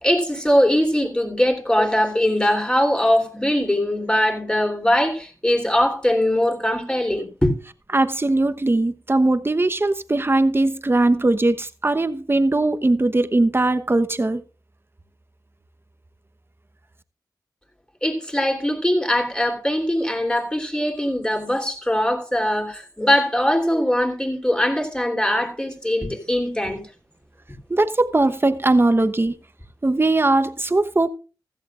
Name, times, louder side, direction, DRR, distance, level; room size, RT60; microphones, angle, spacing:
voice 1, 0.0-7.5 18.0-26.8, left 1 dB, 10° left, 3.4 m, -21 dB
voice 2, 7.9-14.4 27.7-29.3 29.8-31.1, right 2 dB, 30° right, 1.0 m, -20 dB
15.5 x 14.0 x 2.5 m
cardioid pair, 60°, 8 cm